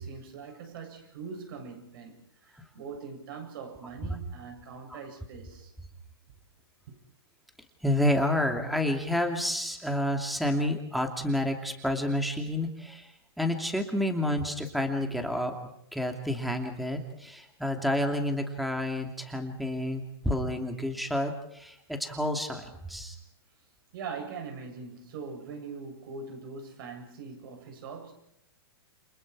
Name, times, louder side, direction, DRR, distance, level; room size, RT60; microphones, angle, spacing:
voice 1, 0.0-5.7 6.9-7.0 23.9-28.1, right 5 dB, 55° right, 7.8 m, -42 dB
voice 2, 7.8-13.1 13.4-23.2, left 1 dB, ahead, 2.7 m, -29 dB
29.5 x 27.5 x 4.9 m
hypercardioid pair, 145°, 14 cm